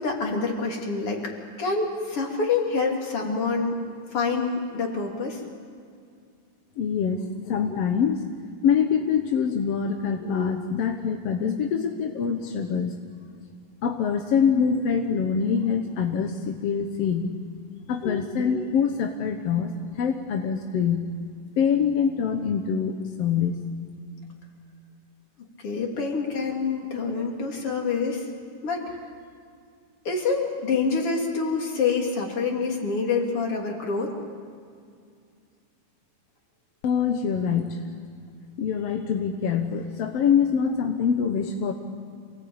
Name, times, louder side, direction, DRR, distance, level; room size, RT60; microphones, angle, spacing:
voice 1, 0.0-1.3 1.6-3.8 4.1-5.4 25.6-28.3 28.6-29.0 30.1-34.2, left 4 dB, 45° left, 1 dB, 3.7 m, -26 dB
voice 2, 6.8-8.3 8.6-13.0 13.8-17.3 17.9-21.1 21.6-23.6 36.8-37.8 38.6-41.7, left 7 dB, 60° left, 4 dB, 1.8 m, -24 dB
27.0 x 19.0 x 8.8 m, 2.3 s
omnidirectional pair, 3.8 m